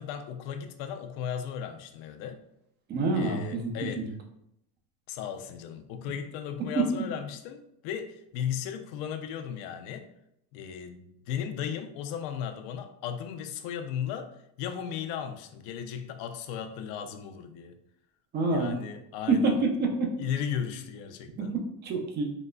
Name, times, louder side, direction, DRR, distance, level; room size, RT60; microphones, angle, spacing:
voice 1, 0.0-2.4 3.1-4.1 5.1-10.1 10.5-14.3 14.6-17.7 18.5-19.6 20.2-21.5, left 8 dB, 60° left, 8 dB, 0.5 m, -36 dB
voice 2, 2.9-4.1 6.6-6.8 18.3-18.8 19.3-20.1 21.4-22.3, right 3 dB, 25° right, 3 dB, 0.4 m, -27 dB
3.8 x 2.0 x 2.2 m, 0.77 s
supercardioid pair, 125°, 47 cm